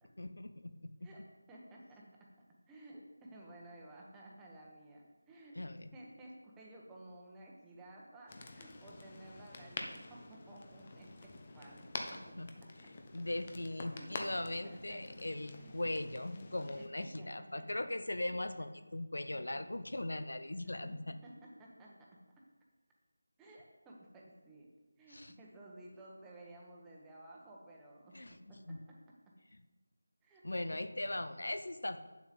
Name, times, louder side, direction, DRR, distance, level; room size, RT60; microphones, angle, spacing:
voice 1, 0.2-0.9 5.6-5.9 12.1-12.5 12.8-21.1 25.1-25.3 28.1-28.4 28.7-28.8 30.4-32.0, left 1 dB, 65° left, 10 dB, 0.7 m, -39 dB
voice 2, 1.0-2.3 2.7-5.6 5.9-12.3 13.9-14.1 14.6-15.1 15.5-15.7 16.4-16.5 16.8-17.7 19.3-19.6 20.6-22.5 23.4-29.4 30.2-30.8, right 1 dB, 10° right, -3 dB, 1.2 m, -55 dB
sound 1, 8.3-16.9, left 3 dB, 30° left, 0.9 m, -47 dB
8.8 x 7.3 x 5.3 m, 1.1 s
figure-of-eight pair, 165°, 0 cm